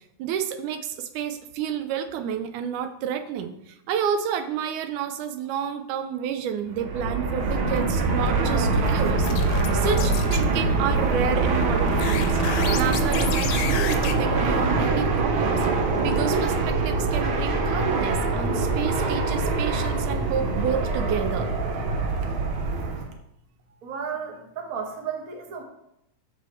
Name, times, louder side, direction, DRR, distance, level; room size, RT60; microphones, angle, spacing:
voice 1, 0.2-12.4 12.7-15.7 16.0-21.5, right 8 dB, 90° right, 9 dB, 2.2 m, -30 dB
Fixed-wing aircraft airplane, 6.7-23.1, right 3 dB, 65° right, 1.3 m, -24 dB
sound 1, 8.7-10.4 11.9-14.1, left 8 dB, 75° left, 1.8 m, -32 dB
voice 2, 23.8-25.6, right 6 dB, 45° right, 3 dB, 1.1 m, -33 dB
13.5 x 5.6 x 3.2 m, 0.81 s
omnidirectional pair, 3.4 m